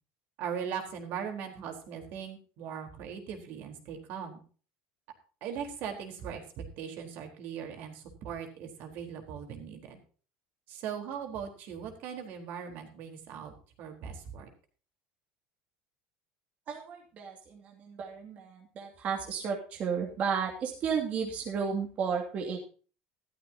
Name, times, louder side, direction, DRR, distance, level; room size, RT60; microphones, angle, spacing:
voice 1, 0.4-4.4 5.4-10.0 10.7-13.5 13.8-14.5, right 7 dB, 55° right, 4 dB, 4.2 m, -39 dB
voice 2, 16.7-22.6, right 6 dB, 40° right, -1 dB, 2.7 m, -33 dB
14.0 x 13.5 x 2.9 m, 0.39 s
cardioid pair, 150°, 4 cm